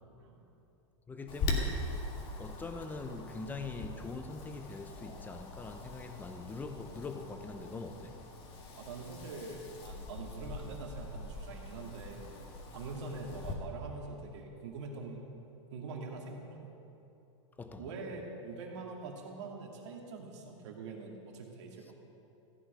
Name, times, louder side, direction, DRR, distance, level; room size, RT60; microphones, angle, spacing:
voice 1, 1.1-1.8 2.4-8.2 17.6-17.9 21.9-22.0, left 3 dB, 10° left, 7 dB, 0.8 m, -43 dB
Wind, 1.3-13.5, left 2 dB, 35° left, 1.7 m, -41 dB
voice 2, 8.7-12.3 12.7-15.2 15.7-16.7 17.8-21.9, right 3 dB, 70° right, 0 dB, 2.4 m, -44 dB
15.5 x 5.2 x 8.9 m, 2.9 s
hypercardioid pair, 135°, 16 cm